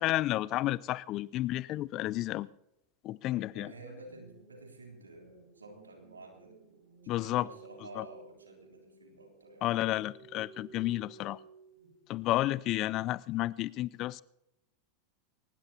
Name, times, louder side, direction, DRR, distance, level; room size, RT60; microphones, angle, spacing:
voice 1, 0.0-2.5 3.0-3.7 7.1-7.5 8.0-8.1 9.6-11.4 12.1-14.2, left 16 dB, 45° left, 0.4 m, -31 dB
sound 1, 3.2-12.2, right 5 dB, 70° right, 7.3 m, -56 dB
voice 2, 3.5-6.6 7.0-9.7, right 2 dB, 85° right, 3.4 m, -51 dB
22.5 x 19.5 x 2.8 m
figure-of-eight pair, 90°, 0 cm